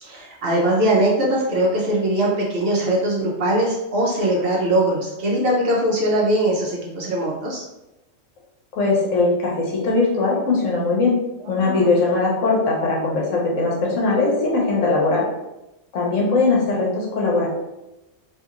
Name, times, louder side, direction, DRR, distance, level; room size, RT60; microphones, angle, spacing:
voice 1, 0.0-7.6 11.6-11.9, right 1 dB, 60° right, -4 dB, 0.7 m, -21 dB
voice 2, 8.7-11.2 11.5-15.3 15.9-17.5, left 3 dB, 75° left, -3 dB, 1.1 m, -20 dB
2.8 x 2.7 x 2.4 m, 0.95 s
omnidirectional pair, 1.3 m